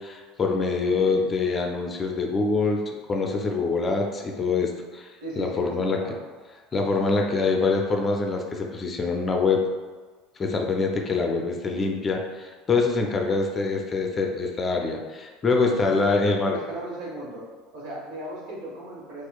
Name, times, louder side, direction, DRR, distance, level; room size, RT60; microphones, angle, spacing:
voice 1, 0.0-5.1 5.4-6.0 6.7-9.6 10.4-16.6, left 4 dB, 30° left, 2 dB, 0.5 m, -25 dB
voice 2, 0.6-1.2 5.2-6.2 16.0-17.4 17.7-19.3, right 1 dB, 75° right, -5 dB, 1.3 m, -37 dB
4.2 x 2.4 x 2.3 m, 1.4 s
supercardioid pair, 95°, 0 cm